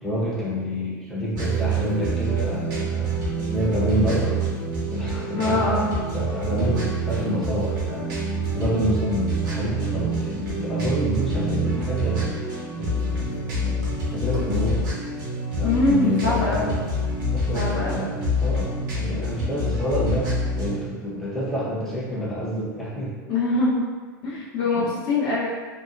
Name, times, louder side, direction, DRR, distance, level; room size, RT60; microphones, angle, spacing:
voice 1, 0.0-4.4 4.9-8.0 8.5-13.8 14.1-15.0 15.5-16.9 17.2-23.1 24.7-24.9, equal, 5° left, -8 dB, 0.9 m, -28 dB
sound 1, 1.3-20.8, right 1 dB, 65° right, 1.0 m, -26 dB
voice 2, 5.3-5.9 15.6-16.7 17.5-18.1 23.3-23.9 24.2-25.5, left 2 dB, 50° left, -6 dB, 0.9 m, -23 dB
2.8 x 2.1 x 2.5 m, 1.5 s
hypercardioid pair, 95°, 11 cm